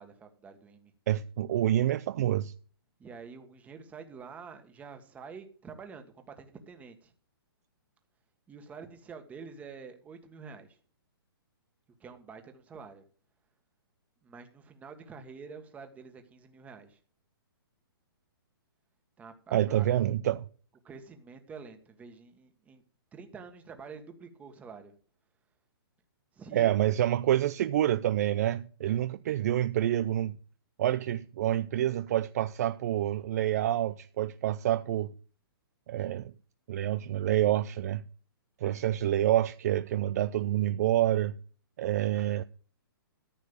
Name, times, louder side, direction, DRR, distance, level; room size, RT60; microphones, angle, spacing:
voice 1, 0.0-0.9 3.0-7.1 8.5-10.8 12.0-13.0 14.2-17.0 19.2-19.9 20.8-22.8 23.1-24.9 26.3-26.7 28.8-29.0 38.6-38.8, right 5 dB, 10° right, 1.6 m, -47 dB
voice 2, 1.1-2.5 19.5-20.4 26.5-30.4 30.8-35.1 35.9-36.3 36.7-38.0 38.6-41.4 41.8-42.4, right 12 dB, 40° right, 0.5 m, -27 dB
14.0 x 6.4 x 6.8 m
hypercardioid pair, 155°, 13 cm